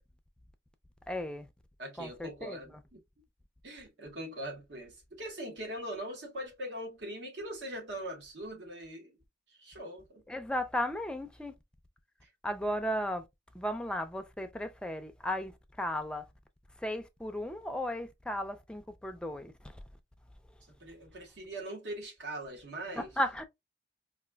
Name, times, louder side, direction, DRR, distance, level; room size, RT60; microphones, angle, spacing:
voice 1, 1.1-1.5 2.0-2.6 10.3-11.5 12.4-13.2 13.5-16.3 16.8-19.8 23.0-23.4, left 1 dB, 5° left, 0.4 m, -35 dB
voice 2, 1.8-3.0 3.6-9.2 9.5-10.2 20.8-23.1, right 1 dB, 75° right, 1.3 m, -41 dB
4.1 x 2.5 x 2.2 m
head